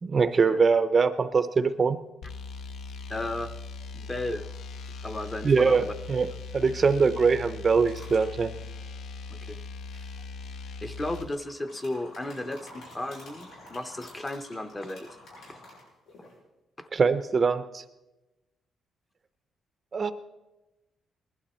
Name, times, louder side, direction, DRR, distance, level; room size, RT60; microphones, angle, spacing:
voice 1, 0.0-2.0 5.4-5.8 6.1-6.3 6.5-8.5 16.9-17.8 19.9-20.1, right 5 dB, 30° right, 12 dB, 0.5 m, -22 dB
sound 1, 2.2-11.3, left 4 dB, 65° left, 0.7 m, -40 dB
voice 2, 3.1-3.5 3.9-4.5 5.0-5.9 9.3-9.6 10.8-15.1 15.5-15.6 16.8-16.9, left 1 dB, 15° left, 9 dB, 0.7 m, -34 dB
sound 2, 7.8-8.3 9.5-10.2 11.0-16.4, left 1 dB, 90° left, 6.7 m, -49 dB
19.5 x 12.0 x 4.3 m, 1.0 s
cardioid pair, 160°, 0 cm